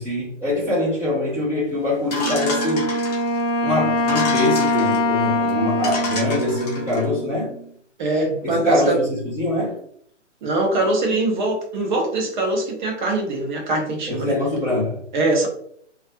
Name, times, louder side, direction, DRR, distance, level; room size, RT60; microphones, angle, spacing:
voice 1, 0.0-2.9 3.6-7.5 8.4-9.8 14.1-15.0, left 1 dB, 5° right, -10 dB, 0.5 m, -23 dB
sound 1, 2.1-3.4 4.0-5.0 5.5-5.6 5.8-7.0, left 3 dB, 35° left, 0.7 m, -30 dB
Wind instrument woodwind instrument, 2.2-7.7, left 1 dB, 75° left, 0.6 m, -23 dB
voice 2, 8.0-9.0 10.4-14.3 15.1-15.5, right 2 dB, 40° right, 1 dB, 0.8 m, -22 dB
2.4 x 2.0 x 2.6 m, 0.64 s
hypercardioid pair, 145°, 37 cm